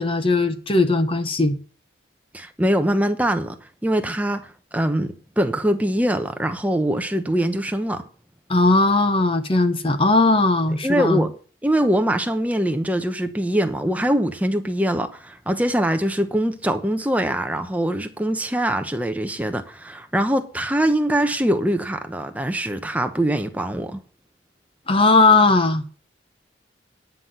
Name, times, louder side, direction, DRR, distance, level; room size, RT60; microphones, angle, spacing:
voice 1, 0.0-1.6 8.5-11.2 24.9-25.8, left 3 dB, 30° left, 0.8 m, -18 dB
voice 2, 2.3-3.5 3.8-4.5 4.7-8.1 10.8-11.3 11.6-24.0, right 1 dB, 10° right, 0.9 m, -23 dB
10.0 x 5.8 x 7.9 m
head